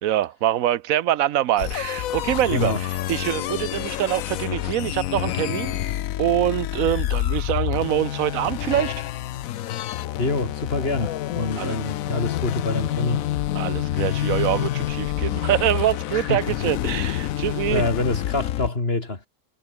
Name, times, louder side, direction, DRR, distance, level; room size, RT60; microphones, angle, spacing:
voice 1, 0.0-5.9 6.2-8.9 11.6-11.7 13.5-17.8, right 12 dB, 85° right, 1.1 m, -24 dB
sound 1, 1.6-18.7, left 13 dB, 85° left, 1.1 m, -28 dB
voice 2, 10.2-13.3 16.1-16.6 17.7-19.2, left 2 dB, 45° left, 3.4 m, -26 dB
omnidirectional pair, 1.4 m